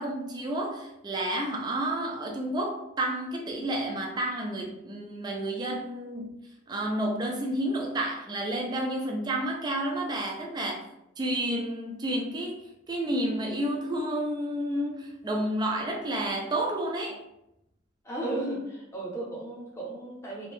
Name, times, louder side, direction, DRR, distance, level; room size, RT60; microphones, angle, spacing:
voice 1, 0.0-6.4 6.7-10.8 11.2-17.2, right 1 dB, 20° right, 0 dB, 0.4 m, -30 dB
voice 2, 18.0-20.5, right 1 dB, 15° left, -3 dB, 0.8 m, -34 dB
2.8 x 2.6 x 3.2 m, 0.84 s
head